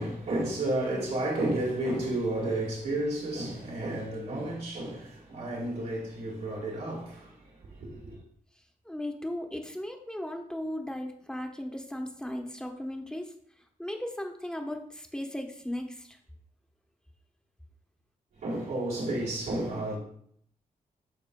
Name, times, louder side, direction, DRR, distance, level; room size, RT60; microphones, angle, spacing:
voice 1, 0.0-7.3 7.7-8.2 18.4-20.0, right 1 dB, 80° right, 1.8 m, -31 dB
voice 2, 8.8-13.3 13.8-16.2, left 1 dB, 5° left, 0.9 m, -36 dB
12.0 x 4.3 x 2.2 m
cardioid pair, 100°, 15 cm